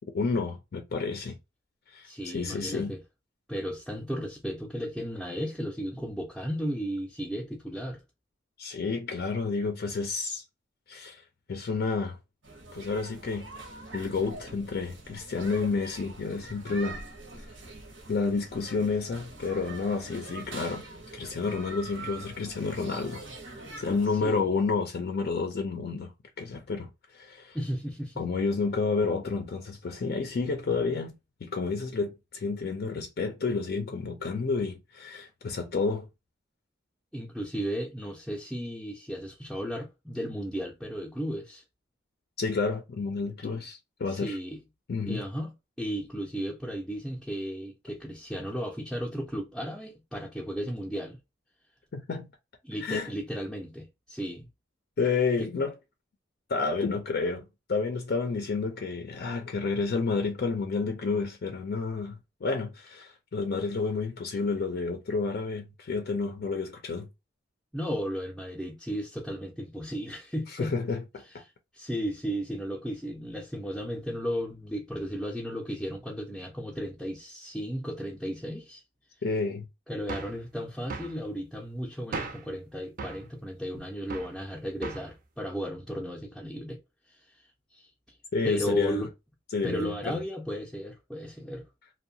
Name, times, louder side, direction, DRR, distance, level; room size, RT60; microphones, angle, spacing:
voice 1, 0.0-1.4 1.9-2.9 8.6-10.4 10.9-11.2 11.5-12.2 12.7-13.5 13.9-17.0 17.4-17.5 18.1-20.9 21.1-23.2 23.8-27.6 28.2-36.1 42.4-44.4 44.9-45.2 51.9-52.3 52.8-53.1 55.0-55.8 56.5-67.1 70.5-71.4 79.2-79.7 88.3-89.0 89.5-90.2, left 4 dB, 55° left, 0.4 m, -30 dB
voice 2, 2.0-3.0 3.5-8.0 24.2-24.4 27.5-28.2 37.1-41.6 44.1-44.6 45.1-45.5 45.8-51.2 52.6-54.5 55.4-55.5 67.7-70.7 71.7-78.8 79.9-86.8 87.1-87.5 87.7-88.2 88.4-89.1 89.6-91.7, equal, ahead, 0.5 m, -34 dB
sound 1, 12.4-24.1, right 2 dB, 85° right, 0.8 m, -44 dB
sound 2, 80.1-80.4 80.9-81.2 82.1-82.5 83.0-83.3 84.1-84.4 84.8-85.1, right 4 dB, 50° right, 0.5 m, -37 dB
2.7 x 2.2 x 2.6 m
head